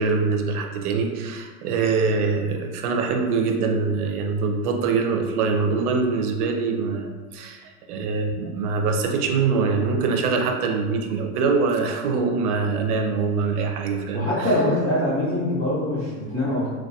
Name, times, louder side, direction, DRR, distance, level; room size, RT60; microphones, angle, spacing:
voice 1, 0.0-14.5, right 4 dB, 90° right, 3 dB, 0.5 m, -24 dB
voice 2, 14.1-16.7, left 1 dB, 15° left, -11 dB, 0.6 m, -23 dB
2.2 x 2.2 x 2.6 m, 1.4 s
supercardioid pair, 175°, 44 cm